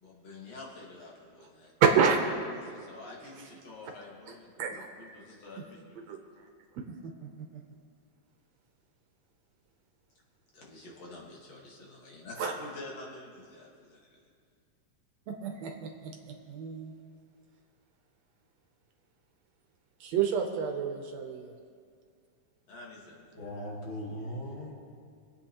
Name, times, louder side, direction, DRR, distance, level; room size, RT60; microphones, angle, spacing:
voice 1, 0.0-1.7 2.5-6.0 10.5-14.3 22.7-23.3, left 2 dB, 60° left, -3 dB, 2.7 m, -47 dB
voice 2, 1.8-2.2 4.6-4.9 6.1-6.2 6.9-7.3 12.4-12.5 15.3-16.9 20.0-21.5, right 6 dB, 70° right, 4 dB, 1.8 m, -28 dB
voice 3, 23.3-24.7, equal, 45° left, -4 dB, 2.4 m, -38 dB
25.5 x 8.5 x 2.9 m, 2.2 s
omnidirectional pair, 3.4 m